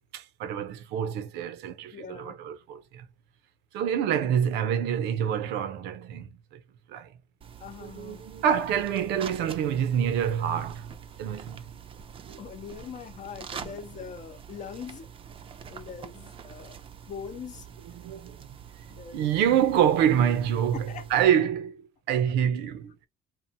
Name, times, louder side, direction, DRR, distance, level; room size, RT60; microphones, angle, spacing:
voice 1, 0.1-3.0 3.7-6.6 6.9-7.1 7.8-10.9 11.2-11.6 12.3-12.4 13.6-13.7 17.9-18.4 19.1-23.1, right 9 dB, 90° right, 0.6 m, -27 dB
voice 2, 1.9-2.4 7.6-8.2 12.4-15.1 15.7-16.8 17.1-17.7 18.9-19.3 20.7-21.1, left 7 dB, 45° left, 0.7 m, -42 dB
sound 1, 7.4-21.2, right 7 dB, 30° right, 0.4 m, -45 dB
2.7 x 2.1 x 2.7 m
cardioid pair, 110°, 17 cm